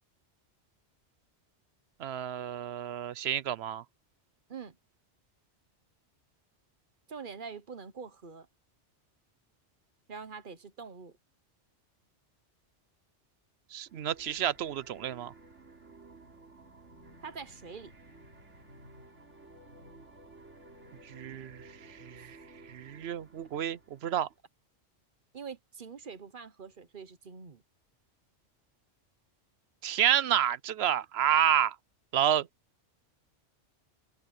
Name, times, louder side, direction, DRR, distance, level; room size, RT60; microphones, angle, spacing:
voice 1, 2.0-3.8 13.7-15.3 21.0-22.4 22.7-24.3 29.8-31.8 32.1-32.5, right 10 dB, 65° right, 0.8 m, -29 dB
voice 2, 7.1-8.5 10.1-11.2 17.2-17.9 22.1-22.3 25.3-27.6, right 5 dB, 45° right, 1.2 m, -44 dB
sound 1, 13.9-24.4, right 2 dB, 90° right, 3.9 m, -54 dB
omnidirectional pair, 1.2 m